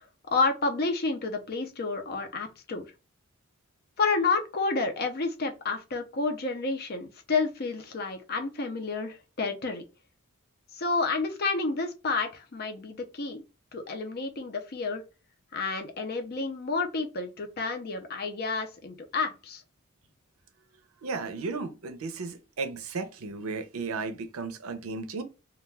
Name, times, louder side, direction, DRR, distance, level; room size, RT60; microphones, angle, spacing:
voice 1, 0.3-2.9 4.0-9.8 10.7-13.4 13.7-15.0 15.5-19.6, left 3 dB, 50° left, 0.5 m, -30 dB
voice 2, 21.0-25.2, right 4 dB, 90° right, 0.5 m, -34 dB
2.3 x 2.2 x 3.1 m
head